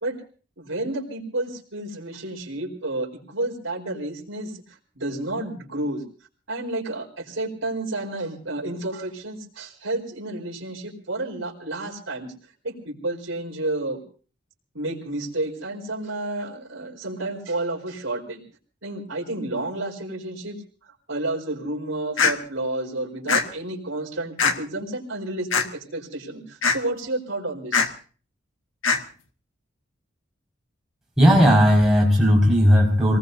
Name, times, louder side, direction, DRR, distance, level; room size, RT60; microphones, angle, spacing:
voice 1, 0.6-4.5 5.0-6.0 6.5-12.3 12.6-14.0 14.7-18.4 18.8-20.6 21.1-27.9, right 2 dB, 85° right, -1 dB, 4.4 m, -30 dB
sound 1, 22.2-22.3 23.3-23.4 24.4-24.6 25.5-25.7 26.6-26.8 27.7-27.9 28.8-29.0, left 5 dB, 80° left, 1.6 m, -20 dB
voice 2, 31.2-33.2, equal, ahead, -4 dB, 5.4 m, -16 dB
27.0 x 19.5 x 2.7 m, 0.40 s
head